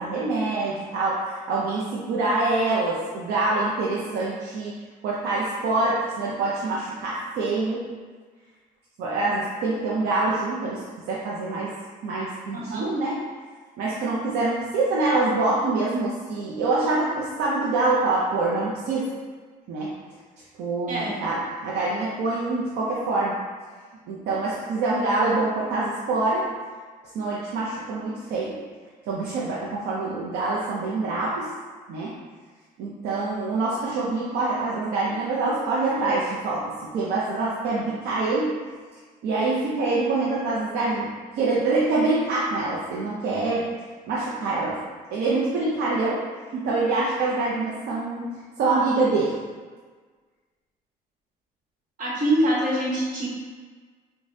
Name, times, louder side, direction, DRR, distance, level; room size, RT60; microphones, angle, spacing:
voice 1, 0.0-4.7 5.0-7.8 9.0-10.8 11.1-11.7 12.0-13.2 13.8-19.1 19.7-19.9 20.6-23.4 24.1-26.5 27.1-28.6 29.1-31.5 31.9-32.2 32.8-38.6 39.2-41.1 41.4-43.6 44.1-44.8 45.1-46.2 46.5-48.3 48.6-49.3, right 3 dB, 75° right, -6 dB, 0.6 m, -25 dB
voice 2, 12.5-12.9 20.9-21.2 52.0-53.3, right 1 dB, 50° right, -5 dB, 1.2 m, -24 dB
4.9 x 2.2 x 2.6 m, 1.5 s
cardioid pair, 110°, 17 cm